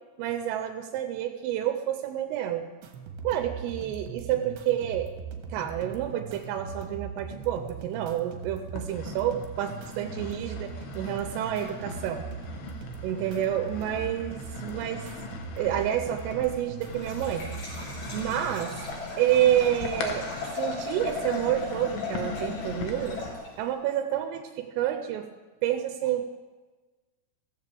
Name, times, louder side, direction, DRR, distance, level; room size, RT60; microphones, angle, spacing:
voice 1, 0.2-2.7 3.2-5.1 5.5-12.2 13.0-15.1 15.6-17.5 18.1-18.8 19.2-20.3 20.6-23.2 23.6-25.3 25.6-26.3, right 11 dB, 85° right, 6 dB, 3.3 m, -29 dB
sound 1, 2.8-18.8, right 5 dB, 70° right, 3.0 m, -40 dB
sound 2, 7.5-8.2 8.7-23.4, left 5 dB, 70° left, 2.4 m, -40 dB
Liquid, 16.9-23.7, left 3 dB, 40° left, 5.8 m, -38 dB
15.5 x 15.0 x 3.5 m, 1.3 s
omnidirectional pair, 5.9 m